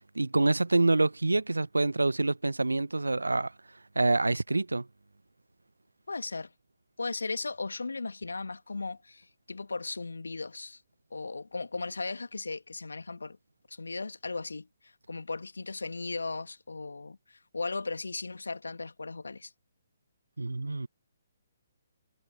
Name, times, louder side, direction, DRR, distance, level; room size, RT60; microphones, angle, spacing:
voice 1, 0.1-3.5 3.9-4.9 20.4-20.9, right 2 dB, 80° right, 0.9 m, -26 dB
voice 2, 6.1-6.5 7.0-10.8 11.1-13.4 13.7-19.5, left 3 dB, 70° left, 2.0 m, -37 dB
figure-of-eight pair, 130°, 0 cm